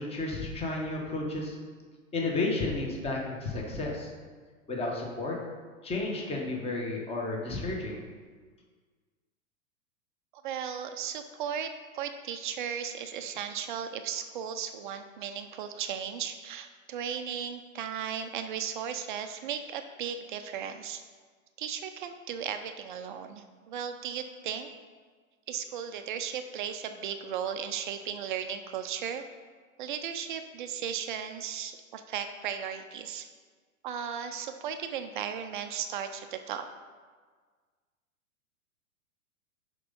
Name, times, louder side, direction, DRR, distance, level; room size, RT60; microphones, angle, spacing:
voice 1, 0.0-1.5 2.1-4.1 4.7-5.3 5.8-8.0, left 2 dB, 15° left, -1 dB, 1.3 m, -32 dB
voice 2, 10.4-11.7 11.9-21.0 21.6-24.7 25.5-29.2 29.8-33.3 33.8-36.7, right 8 dB, 40° right, 7 dB, 0.5 m, -36 dB
6.7 x 5.4 x 5.3 m, 1.5 s
figure-of-eight pair, 105°, 41 cm